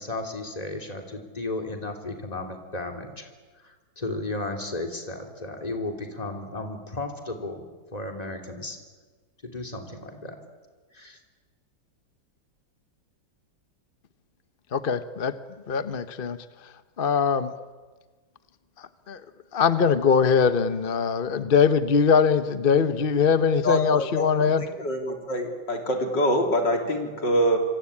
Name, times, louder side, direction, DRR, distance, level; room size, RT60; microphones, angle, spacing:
voice 1, 0.0-3.3 3.6-8.8 9.4-10.4 10.9-11.2, left 2 dB, 20° left, 4 dB, 3.1 m, -34 dB
voice 2, 14.7-15.4 15.7-16.4 17.0-17.5 19.1-19.2 19.5-24.6, left 6 dB, 40° left, 11 dB, 0.8 m, -22 dB
voice 3, 23.6-27.6, equal, 65° left, 3 dB, 4.1 m, -25 dB
26.5 x 25.5 x 8.7 m, 1.4 s
omnidirectional pair, 2.1 m